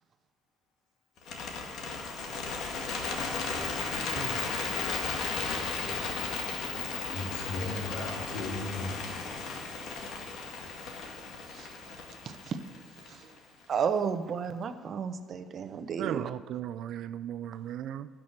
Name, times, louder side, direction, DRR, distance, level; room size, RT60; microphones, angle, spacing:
Bird, 1.2-13.4, left 4 dB, 65° left, 2.0 m, -35 dB
voice 1, 7.1-8.9, left 2 dB, 85° left, -3 dB, 2.8 m, -36 dB
voice 2, 12.2-12.6 13.1-13.3 13.7-16.3, right 6 dB, 40° right, 10 dB, 0.8 m, -33 dB
voice 3, 16.0-18.1, right 11 dB, 60° right, 12 dB, 0.4 m, -36 dB
13.0 x 6.1 x 8.7 m, 1.4 s
cardioid pair, 130°, 0 cm